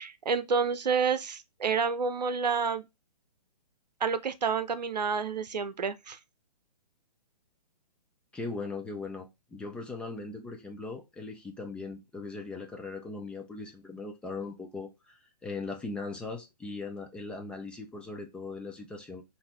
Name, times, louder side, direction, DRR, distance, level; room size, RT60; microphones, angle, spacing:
voice 1, 0.0-2.9 4.0-6.2, right 5 dB, 75° right, 0.7 m, -29 dB
voice 2, 8.3-19.2, left 3 dB, 5° left, 0.4 m, -39 dB
3.9 x 2.7 x 4.1 m
figure-of-eight pair, 130°, 21 cm